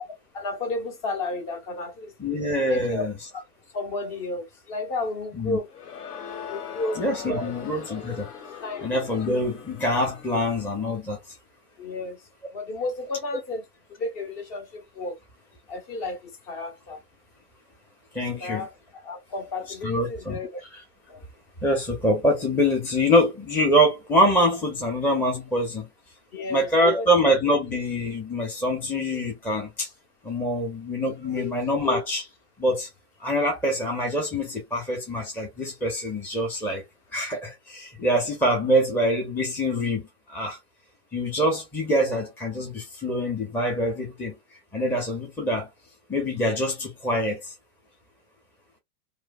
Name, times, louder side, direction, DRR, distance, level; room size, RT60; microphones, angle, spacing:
voice 1, 0.3-2.1 2.7-3.1 3.3-3.4 3.7-5.7 6.5-7.0 7.4-7.5 8.6-8.9 11.8-12.2 12.5-13.6 13.9-15.2 15.7-17.0 18.4-18.7 19.0-20.6 21.1-21.2 26.3-27.1 31.2-31.5, left 2 dB, 40° left, 1.1 m, -32 dB
voice 2, 2.2-3.1 5.3-5.6 7.0-8.3 8.8-11.2 18.1-18.7 19.8-20.4 20.7-20.8 21.6-25.9 26.5-29.9 30.2-32.3 32.6-32.9 33.2-36.8 37.1-40.0 40.3-40.6 41.1-44.4 44.7-45.7 46.1-47.5, equal, 5° left, 0.6 m, -24 dB
Crowd, 5.7-10.7, left 7 dB, 70° left, 1.2 m, -40 dB
3.1 x 2.1 x 2.3 m
hypercardioid pair, 115°, 47 cm